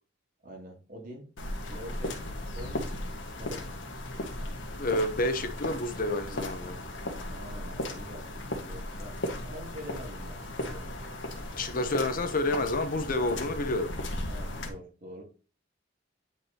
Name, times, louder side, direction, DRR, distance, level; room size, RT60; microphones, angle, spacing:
voice 1, 0.4-1.3 1.7-2.8 3.3-3.9 7.2-11.0 13.2-13.4 14.3-15.2, equal, 45° right, 2.7 m, -46 dB
sound 1, 1.4-14.7, left 1 dB, 70° left, 1.6 m, -36 dB
voice 2, 4.7-6.8 11.5-13.9, left 2 dB, 45° left, 0.9 m, -29 dB
9.1 x 4.8 x 2.9 m
head